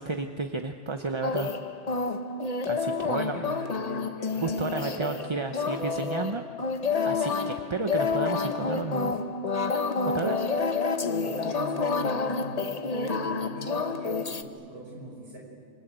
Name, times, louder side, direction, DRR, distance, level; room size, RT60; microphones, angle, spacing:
voice 1, 0.0-1.5 2.7-3.4 4.4-6.4 7.0-9.1 10.0-10.5, right 4 dB, 30° right, 6 dB, 0.8 m, -32 dB
sound 1, 1.2-14.4, left 4 dB, 35° left, 1.0 m, -29 dB
voice 2, 2.9-5.7 11.1-15.4, right 1 dB, 60° right, -1 dB, 6.1 m, -41 dB
27.5 x 25.5 x 8.2 m, 2.2 s
omnidirectional pair, 1.2 m